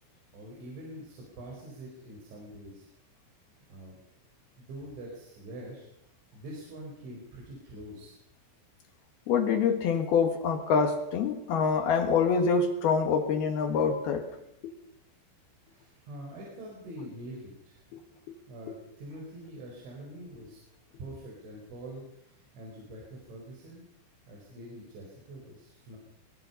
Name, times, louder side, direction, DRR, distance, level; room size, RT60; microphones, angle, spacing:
voice 1, 0.3-2.9 3.7-4.0 4.6-5.9 6.3-8.2 15.7-17.8 18.5-20.6 21.0-23.9 24.3-26.0, right 1 dB, 65° right, -2 dB, 6.9 m, -45 dB
voice 2, 9.3-14.3 14.6-14.7, left 5 dB, 65° left, 6 dB, 2.8 m, -26 dB
23.5 x 22.0 x 5.6 m, 0.80 s
omnidirectional pair, 6.0 m